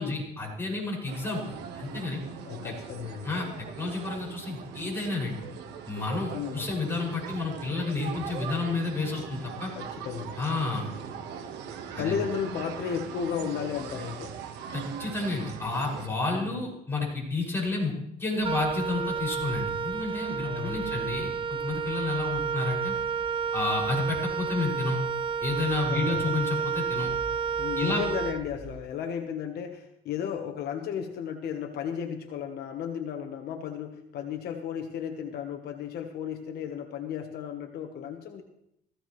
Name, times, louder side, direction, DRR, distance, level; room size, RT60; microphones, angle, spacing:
voice 1, 0.0-2.2 2.6-2.7 3.2-3.5 3.8-5.4 5.9-9.7 10.4-10.9 11.9-12.2 14.7-17.9 18.2-22.9 23.5-25.0 25.4-27.1 27.8-28.0, left 3 dB, 15° left, -4 dB, 6.5 m, -30 dB
sound 1, 1.1-16.1, right 7 dB, 85° right, 1.4 m, -40 dB
voice 2, 2.4-3.3 6.3-6.7 9.7-10.3 12.0-14.4 16.3-16.6 20.4-21.0 25.9-26.3 27.6-38.4, left 8 dB, 70° left, 5 dB, 1.3 m, -34 dB
Wind instrument woodwind instrument, 18.4-28.9, right 6 dB, 30° right, 0.9 m, -31 dB
17.5 x 15.5 x 3.2 m, 0.79 s
cardioid pair, 110°, 17 cm